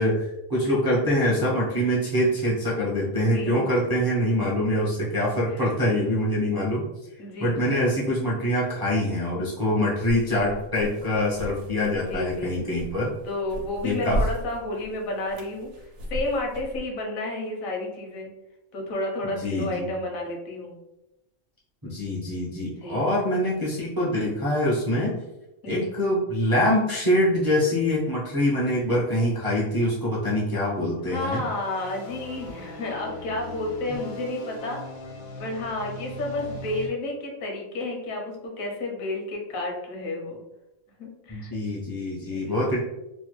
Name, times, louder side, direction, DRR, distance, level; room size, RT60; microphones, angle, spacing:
voice 1, 0.0-6.8 7.4-13.1 13.8-14.2 19.2-19.9 21.8-25.2 25.7-31.4 41.3-42.8, left 1 dB, 30° right, -6 dB, 0.4 m, -24 dB
voice 2, 3.3-3.7 5.5-5.6 7.2-7.6 11.9-12.6 13.2-15.7 16.1-18.3 18.7-20.8 22.8-23.1 25.6-25.9 31.1-34.8 35.4-40.4 41.0-41.5 42.3-42.7, left 2 dB, 80° left, 0 dB, 1.2 m, -31 dB
sound 1, 10.0-16.8, equal, 65° right, 0.9 m, -35 dB
sound 2, 31.2-36.9, left 1 dB, 65° left, 0.4 m, -40 dB
2.9 x 2.2 x 3.0 m, 0.94 s
omnidirectional pair, 1.4 m